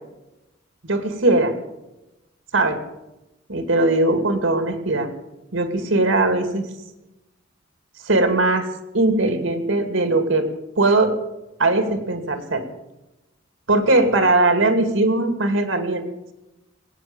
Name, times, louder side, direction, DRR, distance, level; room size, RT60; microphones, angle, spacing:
voice 1, 0.8-1.5 2.5-2.8 3.5-5.1 5.5-6.6 8.0-8.6 8.9-10.5 10.8-11.1 11.6-12.6 13.7-16.0, right 2 dB, 85° right, 7 dB, 2.5 m, -19 dB
21.5 x 9.2 x 7.3 m, 0.96 s
head